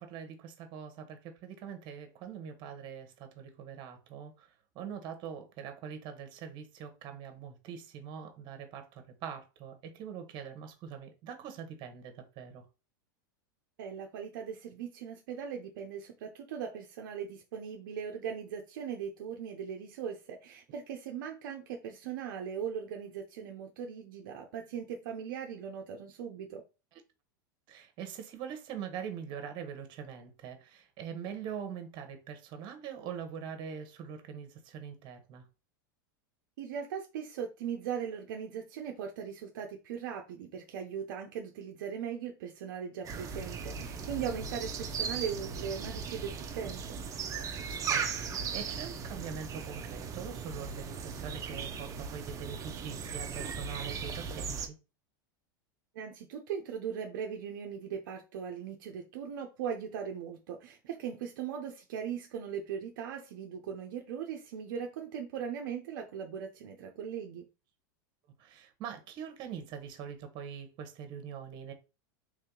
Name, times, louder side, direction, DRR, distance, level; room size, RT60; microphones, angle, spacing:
voice 1, 0.0-4.5 4.7-12.6 27.7-35.4 47.7-54.8 68.4-71.7, right 7 dB, 45° right, 1.1 m, -43 dB
voice 2, 13.8-26.6 36.6-46.8 55.9-67.4, right 7 dB, 70° right, 0.6 m, -39 dB
sound 1, 43.0-54.7, right 6 dB, 30° right, 0.7 m, -37 dB
3.1 x 2.8 x 3.7 m
hypercardioid pair, 110°, 11 cm